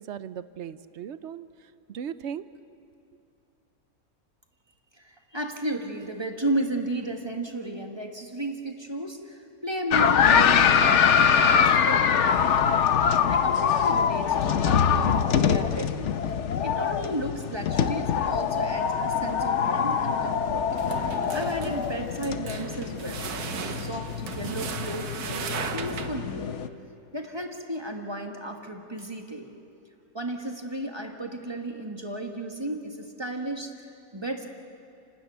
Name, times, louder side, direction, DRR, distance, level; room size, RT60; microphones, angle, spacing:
voice 1, 0.0-2.4, right 8 dB, 60° right, 14 dB, 0.8 m, -38 dB
voice 2, 4.9-12.8 13.3-16.1 16.6-20.7 21.3-26.6 27.1-29.5 30.1-33.9 34.1-34.5, right 1 dB, 15° right, 3 dB, 1.7 m, -34 dB
sound 1, 9.9-26.7, left 7 dB, 55° left, 1.0 m, -24 dB
sound 2, 19.3-19.6 20.5-26.4, right 6 dB, 80° right, 1.6 m, -37 dB
30.0 x 12.5 x 9.3 m, 2.6 s
omnidirectional pair, 1.6 m